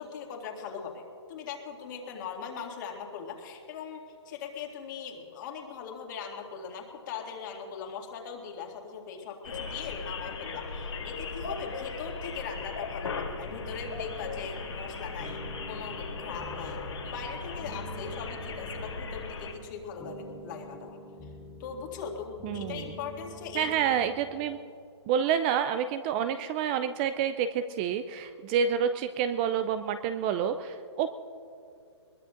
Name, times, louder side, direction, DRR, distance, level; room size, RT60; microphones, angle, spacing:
voice 1, 0.0-21.3 21.6-23.7 25.2-25.3, left 6 dB, 40° left, 1 dB, 2.2 m, -40 dB
sound 1, 9.4-19.5, left 4 dB, 75° left, 2.3 m, -38 dB
sound 2, 13.4-24.6, left 1 dB, 10° left, 2.3 m, -47 dB
voice 2, 22.4-22.9 23.5-24.6 25.1-31.1, right 8 dB, 20° right, 10 dB, 0.3 m, -28 dB
21.5 x 21.0 x 2.5 m, 2.5 s
hypercardioid pair, 145°, 15 cm